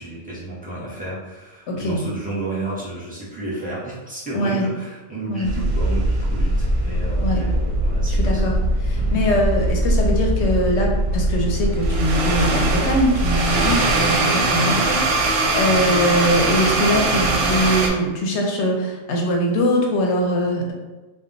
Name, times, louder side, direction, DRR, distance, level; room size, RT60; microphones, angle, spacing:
voice 1, 0.0-8.5 8.9-9.1 14.5-14.7 15.6-15.9, right 2 dB, 10° right, -8 dB, 0.6 m, -32 dB
voice 2, 1.7-2.0 4.3-4.7 5.3-5.5 7.2-7.4 8.2-8.5 8.8-14.9 15.1-20.7, equal, 70° left, 0 dB, 0.9 m, -22 dB
sound 1, 5.4-17.9, right 1 dB, 65° right, 0.7 m, -21 dB
2.3 x 2.2 x 3.8 m, 1.2 s
omnidirectional pair, 1.3 m